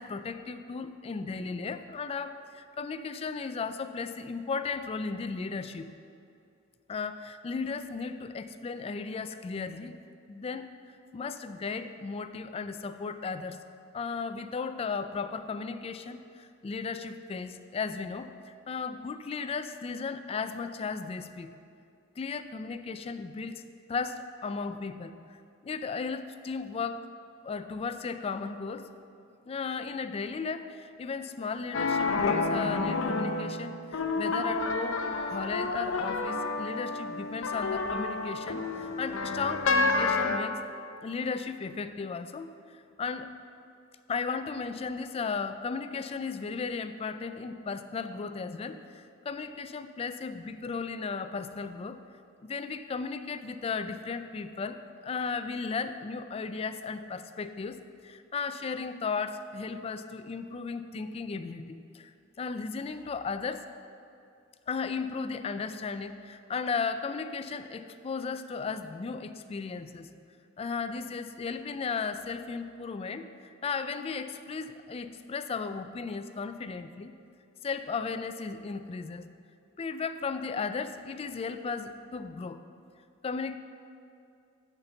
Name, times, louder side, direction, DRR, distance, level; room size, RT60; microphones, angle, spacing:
voice 1, 0.0-5.9 6.9-9.9 10.3-10.7 11.1-13.6 13.9-21.6 22.2-23.6 23.9-25.2 25.6-27.0 27.4-28.9 29.5-40.6 41.0-43.3 44.1-52.0 52.4-62.1 62.4-63.7 64.7-70.1 70.6-77.1 77.6-79.3 79.8-82.6 83.2-83.6, left 5 dB, 30° left, 10 dB, 0.3 m, -35 dB
sound 1, 31.7-40.4, left 3 dB, 85° left, 0.6 m, -29 dB
6.6 x 5.9 x 6.9 m, 2.5 s
head